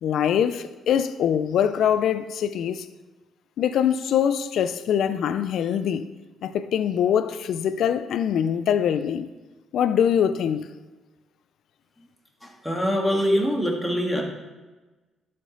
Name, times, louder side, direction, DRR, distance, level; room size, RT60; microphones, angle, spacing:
voice 1, 0.0-2.9 3.6-6.1 6.4-9.3 9.7-10.7, left 9 dB, 75° left, 0.4 m, -23 dB
voice 2, 12.4-14.2, equal, 5° left, 1.9 m, -24 dB
11.5 x 5.2 x 3.9 m
cardioid pair, 90°, 0 cm